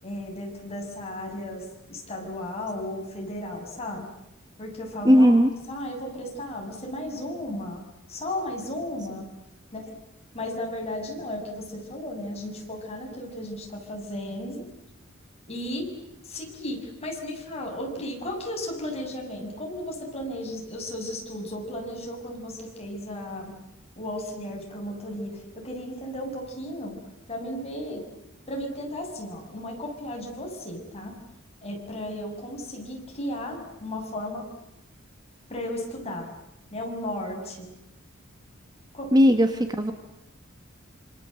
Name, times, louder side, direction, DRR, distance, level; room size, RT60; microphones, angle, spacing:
voice 1, 0.0-4.1 4.6-5.4 5.7-9.3 9.7-9.9 10.3-14.7 15.5-15.9 16.2-23.6 24.0-27.0 27.3-28.0 28.5-31.2 31.6-34.5 35.5-36.3 36.7-37.7 38.9-39.2, left 1 dB, 30° left, 1 dB, 7.1 m, -34 dB
voice 2, 5.1-5.5 39.1-39.9, equal, 20° right, 7 dB, 1.6 m, -17 dB
27.0 x 26.5 x 7.9 m, 0.89 s
head